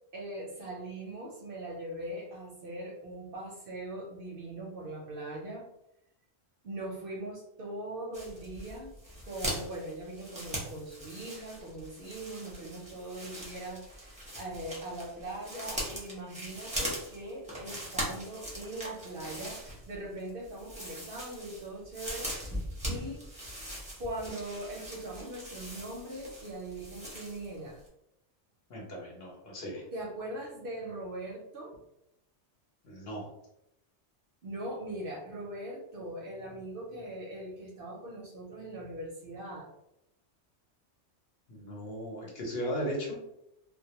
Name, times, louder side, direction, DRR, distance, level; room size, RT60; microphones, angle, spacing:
voice 1, 0.1-5.7 6.6-8.9 9.2-22.3 22.9-23.2 24.0-27.8 29.9-31.8 34.4-39.7 43.1-43.2, right 1 dB, 60° right, -2 dB, 0.6 m, -41 dB
sound 1, 8.1-27.6 27.9-28.0, equal, 10° right, 0.5 m, -41 dB
voice 2, 28.7-29.8 32.8-33.3 41.5-43.2, equal, 60° left, -2 dB, 0.9 m, -37 dB
2.2 x 2.0 x 2.8 m, 0.82 s
omnidirectional pair, 1.2 m